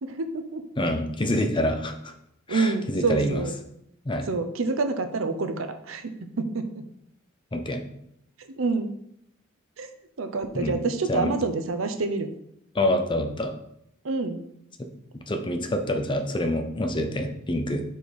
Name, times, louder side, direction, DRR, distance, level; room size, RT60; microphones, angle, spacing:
voice 1, 0.0-0.6 2.5-3.5 4.3-6.8 8.6-8.9 9.8-9.9 10.2-12.3 14.0-14.4, right 3 dB, 75° right, 8 dB, 0.6 m, -27 dB
voice 2, 0.8-2.1 2.5-3.4 4.0-4.3 7.5-7.8 10.5-10.8 11.1-11.3 12.7-13.5 14.8-14.9 15.3-17.8, left 1 dB, 25° left, 6 dB, 0.6 m, -26 dB
5.3 x 4.4 x 4.7 m, 0.75 s
head